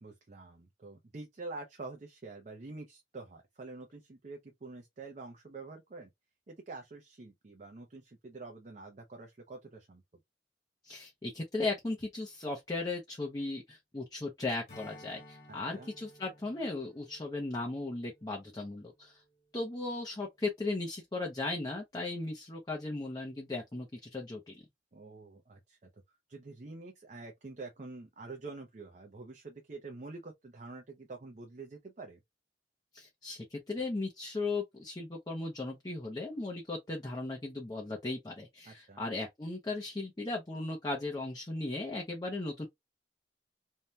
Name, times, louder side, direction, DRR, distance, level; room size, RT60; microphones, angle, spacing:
voice 1, 0.0-6.1 6.5-10.0 15.5-15.9 24.9-32.2 38.7-39.0, right 3 dB, 45° right, 0.6 m, -47 dB
voice 2, 10.8-19.2 19.5-24.6 32.9-42.7, left 2 dB, 20° left, 0.6 m, -37 dB
Strum, 14.7-19.5, left 1 dB, 40° left, 1.3 m, -56 dB
2.7 x 2.2 x 3.1 m
head